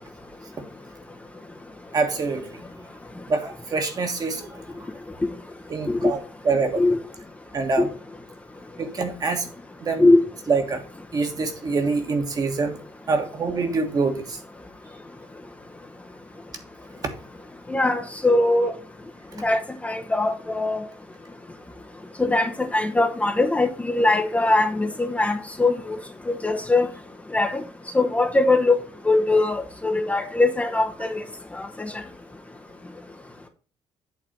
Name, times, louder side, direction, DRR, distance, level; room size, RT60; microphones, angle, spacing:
voice 1, 1.9-2.5 3.3-4.6 5.7-6.8 7.5-7.9 8.8-9.5 9.8-10.1 10.5-10.8 11.1-12.8 13.1-14.4, right 4 dB, 35° right, 1.5 m, -25 dB
voice 2, 17.7-18.7 19.4-20.8 22.2-26.0 26.3-26.9 27.3-27.6 27.9-28.8 29.0-31.2 31.5-31.7, left 2 dB, 15° left, 0.8 m, -21 dB
8.3 x 3.3 x 6.4 m
cardioid pair, 105°, 11 cm